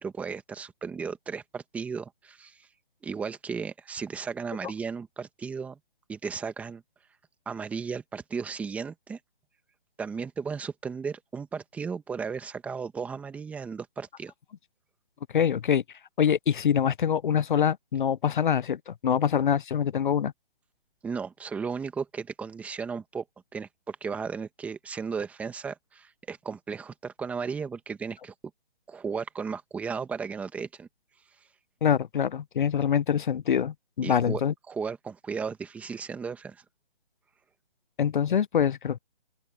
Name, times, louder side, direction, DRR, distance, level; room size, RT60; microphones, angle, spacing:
voice 1, 0.0-2.7 3.0-5.8 6.1-6.8 7.4-9.2 10.0-14.3 21.0-23.2 23.5-28.3 28.9-30.9 34.0-34.4 34.7-36.6, right 5 dB, 5° right, 1.4 m, -35 dB
voice 2, 15.3-15.8 16.2-20.3 31.8-34.5 38.0-39.0, left 8 dB, 55° left, 0.5 m, -25 dB
open air
hypercardioid pair, 160°, 31 cm